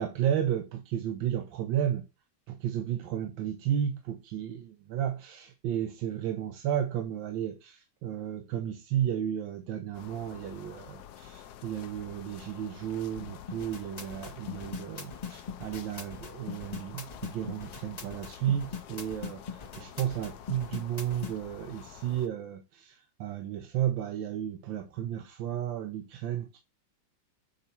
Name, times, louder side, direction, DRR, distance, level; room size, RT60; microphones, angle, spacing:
voice 1, 0.0-2.0 2.5-26.6, right 10 dB, 85° right, 1.5 m, -33 dB
sound 1, 9.9-22.3, left 10 dB, 70° left, 1.1 m, -48 dB
sound 2, 13.5-21.3, left 6 dB, 35° left, 0.6 m, -40 dB
7.0 x 4.1 x 4.4 m
omnidirectional pair, 2.0 m